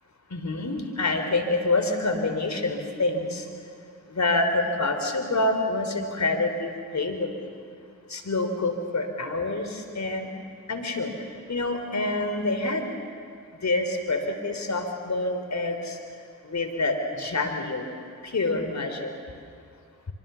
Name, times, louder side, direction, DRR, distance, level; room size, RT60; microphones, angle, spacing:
voice 1, 0.3-3.5 4.1-7.3 8.1-10.3 10.7-11.1 11.5-12.9 13.6-16.0 16.4-17.9 18.2-19.1, left 2 dB, 50° left, 6 dB, 4.0 m, -27 dB
24.5 x 23.5 x 7.2 m, 2.3 s
supercardioid pair, 45°, 36 cm